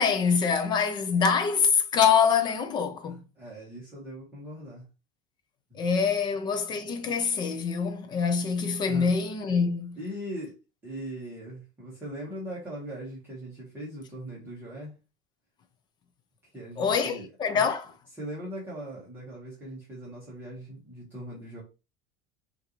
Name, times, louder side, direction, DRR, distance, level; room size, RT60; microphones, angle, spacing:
voice 1, 0.0-3.2 5.7-10.0 16.8-17.8, left 6 dB, 25° left, 0.5 m, -25 dB
voice 2, 3.0-4.8 5.7-6.3 8.9-9.1 10.0-14.9 16.5-17.3 17.5-17.7 18.2-21.6, right 1 dB, 10° right, 1.3 m, -40 dB
5.6 x 2.6 x 3.0 m
cardioid pair, 170°, 18 cm